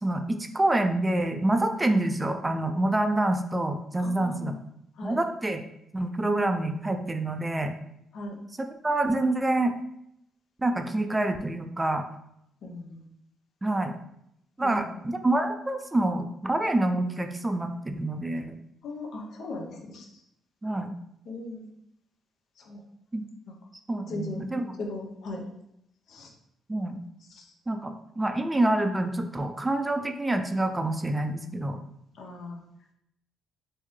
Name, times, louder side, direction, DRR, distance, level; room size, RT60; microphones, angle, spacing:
voice 1, 0.0-4.5 5.0-5.6 5.9-7.8 8.6-9.7 10.6-12.1 13.6-14.0 14.6-18.6 20.6-20.9 23.1-23.2 23.9-24.7 26.7-27.0 27.7-31.8, right 1 dB, 15° right, 6 dB, 0.4 m, -27 dB
voice 2, 4.0-4.6 5.0-5.2 8.1-8.4 12.6-13.0 14.6-15.0 18.8-20.2 21.3-21.7 22.6-22.8 23.5-23.6 24.1-25.4 26.1-26.3 27.3-27.5 32.1-32.6, left 2 dB, 70° left, 2 dB, 0.7 m, -38 dB
3.5 x 2.6 x 3.2 m, 0.77 s
cardioid pair, 90°, 0 cm